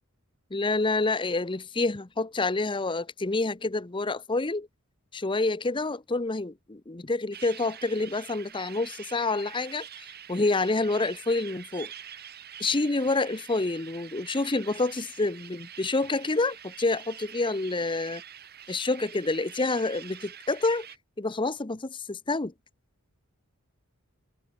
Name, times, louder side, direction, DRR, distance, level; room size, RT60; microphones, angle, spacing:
voice 1, 0.5-4.7 5.1-11.9 12.6-18.2 18.7-20.9 21.2-22.5, left 3 dB, 20° left, 0.8 m, -28 dB
sound 1, 7.3-21.0, right 9 dB, 45° right, 2.9 m, -46 dB
head